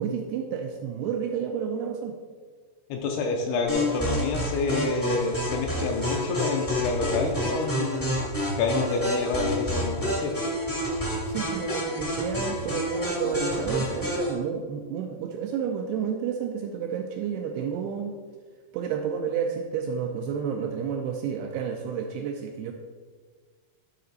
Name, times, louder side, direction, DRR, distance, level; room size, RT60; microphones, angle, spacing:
voice 1, 0.0-2.2 11.3-18.1 18.7-22.7, right 7 dB, 85° right, 3 dB, 2.3 m, -30 dB
voice 2, 2.9-8.2 8.6-10.3, left 3 dB, 80° left, 2 dB, 2.4 m, -28 dB
sound 1, 3.7-14.3, equal, 25° left, 0.4 m, -29 dB
12.0 x 4.2 x 4.0 m, 1.5 s
omnidirectional pair, 5.1 m